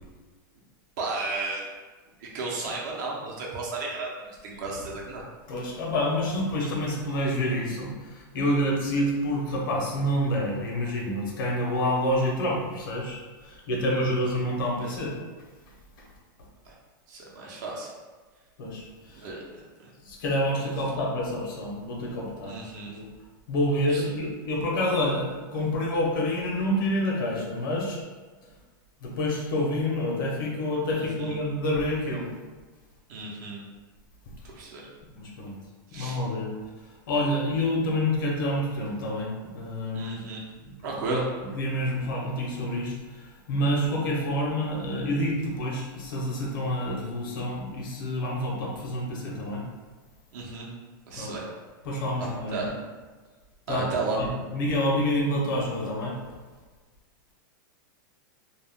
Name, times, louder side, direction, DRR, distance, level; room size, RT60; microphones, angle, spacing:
voice 1, 1.0-1.7 2.2-5.2 14.0-14.3 16.6-16.7 17.1-17.9 19.1-19.9 22.4-23.0 23.9-24.0 30.9-31.4 33.1-33.6 34.6-34.9 35.9-36.2 39.9-40.4 40.8-41.3 50.3-50.7 51.1-51.4 52.2-52.7 53.7-54.3, right 3 dB, 60° right, -3 dB, 0.7 m, -34 dB
voice 2, 5.5-15.2 16.0-16.1 18.6-19.3 20.0-23.1 23.5-28.0 29.0-32.3 35.1-35.6 35.9-36.5 37.1-40.1 40.6-40.7 41.1-41.2 41.6-49.6 51.1-51.3 51.8-52.6 53.7-53.8 54.2-56.2, left 1 dB, 70° left, -1 dB, 0.8 m, -28 dB
2.3 x 2.2 x 3.5 m, 1.3 s
supercardioid pair, 145°, 11 cm